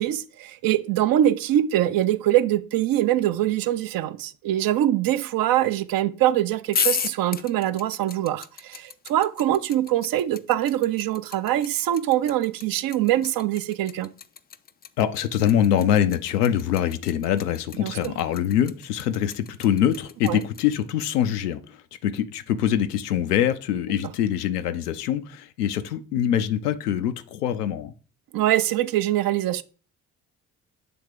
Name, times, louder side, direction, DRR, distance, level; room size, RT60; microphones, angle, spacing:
voice 1, 0.0-14.1 17.8-17.9 20.2-20.4 28.3-29.6, right 12 dB, 50° right, 0.5 m, -23 dB
sound 1, 6.7-20.8, left 7 dB, 20° left, 0.4 m, -33 dB
voice 2, 15.0-27.9, left 10 dB, 85° left, 0.5 m, -24 dB
7.0 x 3.6 x 4.8 m
hypercardioid pair, 45°, 46 cm